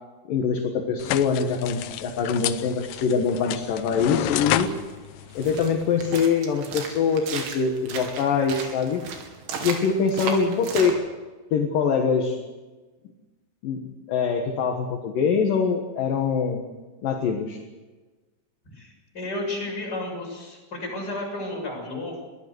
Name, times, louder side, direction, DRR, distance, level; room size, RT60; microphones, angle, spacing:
voice 1, 0.3-4.7 5.3-9.0 9.6-11.0 11.5-12.4 13.6-13.8 14.1-16.6 17.0-17.6, left 5 dB, 60° left, 3 dB, 2.6 m, -24 dB
sound 1, 1.0-6.2, left 13 dB, 80° left, 3.0 m, -31 dB
sound 2, 4.6-10.9, right 5 dB, 80° right, 5.0 m, -35 dB
voice 2, 18.7-22.2, left 2 dB, 20° left, -1 dB, 7.1 m, -32 dB
22.5 x 16.0 x 8.0 m, 1.2 s
omnidirectional pair, 5.4 m